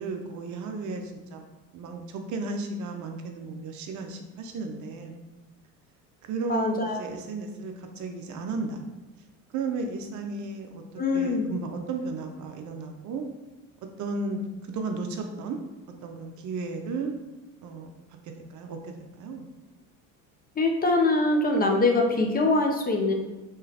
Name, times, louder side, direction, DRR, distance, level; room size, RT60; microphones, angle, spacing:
voice 1, 0.0-1.5 1.7-5.2 6.2-8.8 9.5-10.8 11.1-13.2 14.0-15.6 16.0-17.2 17.6-17.9 18.2-19.5, right 3 dB, 45° right, 4 dB, 0.6 m, -34 dB
voice 2, 6.5-7.0 11.0-11.5 20.6-23.1, left 2 dB, 20° left, 1 dB, 0.6 m, -23 dB
3.7 x 3.1 x 2.8 m, 1.1 s
hypercardioid pair, 80°, 41 cm